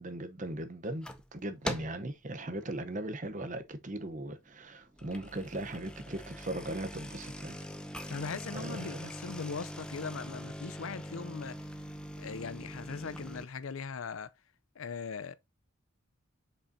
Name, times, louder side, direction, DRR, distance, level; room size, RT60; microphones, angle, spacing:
voice 1, 0.0-7.6 7.9-8.2 8.5-9.0, right 1 dB, 40° right, 0.9 m, -39 dB
sound 1, 0.8-1.3 1.6-2.1 2.5-2.9 3.4-3.5 3.7-3.8 4.8-13.5, equal, 5° left, 0.6 m, -42 dB
voice 2, 8.1-11.6 12.2-14.3 14.8-15.3, left 5 dB, 80° left, 0.6 m, -39 dB
7.1 x 5.4 x 2.7 m
head